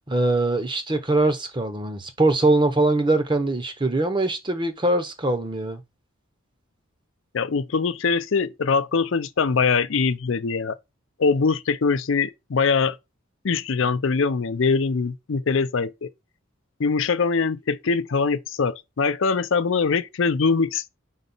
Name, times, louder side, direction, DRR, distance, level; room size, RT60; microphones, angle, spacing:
voice 1, 0.1-5.8, right 2 dB, 20° right, 0.7 m, -22 dB
voice 2, 7.3-10.8 11.2-13.0 13.4-16.1 16.8-20.9, left 5 dB, 65° left, 0.5 m, -22 dB
5.1 x 4.0 x 5.4 m
head